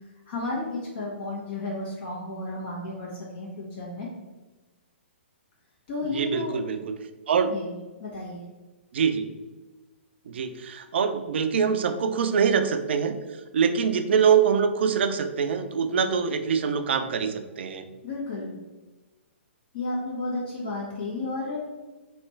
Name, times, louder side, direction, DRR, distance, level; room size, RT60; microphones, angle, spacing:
voice 1, 0.3-4.1 5.9-6.6 7.5-8.4 18.0-18.6 19.7-21.6, left 2 dB, 50° left, -5 dB, 1.2 m, -32 dB
voice 2, 6.1-6.9 7.3-7.5 8.9-9.3 10.3-13.2 13.5-17.9, right 6 dB, 65° right, 8 dB, 0.5 m, -24 dB
3.2 x 3.0 x 4.4 m, 1.2 s
hypercardioid pair, 125°, 7 cm